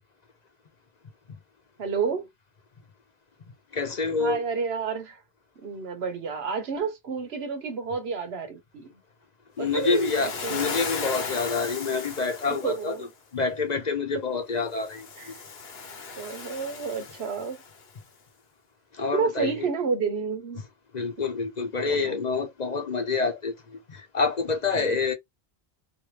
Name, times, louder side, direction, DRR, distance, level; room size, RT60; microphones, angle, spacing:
voice 1, 1.8-2.3 4.2-5.2 5.6-8.9 9.6-10.7 12.5-13.1 15.2-15.3 16.2-17.6 19.1-20.6 21.8-22.2 24.7-25.0, right 5 dB, 80° right, 1.1 m, -30 dB
voice 2, 3.7-4.4 9.6-13.1 13.3-15.3 18.9-19.7 20.9-25.1, left 4 dB, 45° left, 0.8 m, -27 dB
Waves surf, 9.7-12.9 14.7-17.8, left 4 dB, 70° left, 1.1 m, -36 dB
3.3 x 2.7 x 3.2 m
omnidirectional pair, 1.1 m